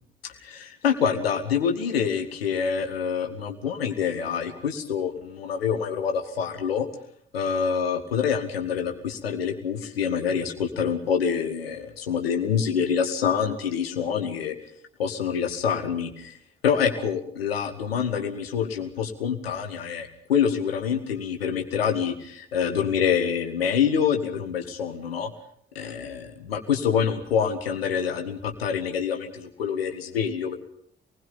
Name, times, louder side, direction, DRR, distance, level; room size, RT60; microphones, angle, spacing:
voice 1, 0.2-6.9 7.3-14.6 15.0-16.4 16.6-25.3 25.8-30.6, left 7 dB, 80° left, 5 dB, 1.9 m, -26 dB
28.0 x 20.0 x 5.4 m, 0.65 s
figure-of-eight pair, 40°, 29 cm